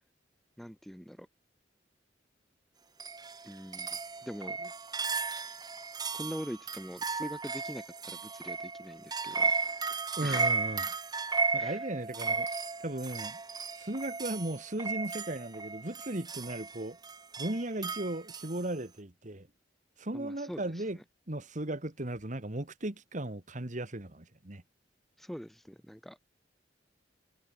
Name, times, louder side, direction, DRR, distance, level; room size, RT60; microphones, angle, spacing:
voice 1, 0.6-1.3 3.4-4.7 6.1-9.5 10.2-10.6 11.6-11.8 20.1-20.6 20.9-21.0 25.2-26.3, equal, ahead, 1.6 m, -43 dB
sound 1, 3.0-18.6, right 4 dB, 20° right, 1.1 m, -35 dB
voice 2, 10.2-10.8 11.5-12.5 12.8-13.4 13.8-17.0 17.4-19.5 20.0-21.0 21.3-24.6, right 1 dB, 45° right, 1.9 m, -36 dB
head